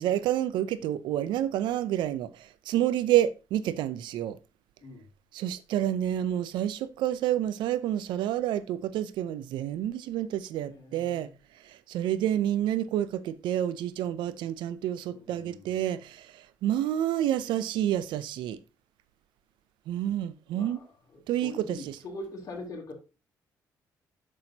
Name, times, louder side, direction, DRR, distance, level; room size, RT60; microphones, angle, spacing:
voice 1, 0.0-4.4 5.3-18.6 19.9-20.8 21.3-22.0, right 11 dB, 80° right, 0.6 m, -29 dB
voice 2, 10.6-11.3 15.1-15.7 20.5-20.9 21.1-22.9, left 2 dB, 50° left, 2.9 m, -43 dB
9.0 x 6.3 x 2.8 m
supercardioid pair, 75°, 8 cm